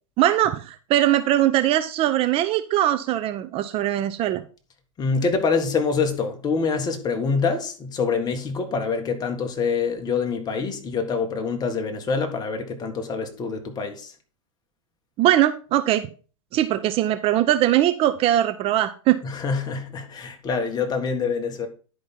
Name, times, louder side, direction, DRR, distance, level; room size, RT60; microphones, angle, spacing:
voice 1, 0.2-4.4 15.2-16.1 16.5-19.2, right 13 dB, 35° right, 0.6 m, -21 dB
voice 2, 5.0-14.1 19.2-21.7, left 5 dB, 25° left, 1.6 m, -25 dB
10.5 x 5.1 x 4.3 m
hypercardioid pair, 120°, 17 cm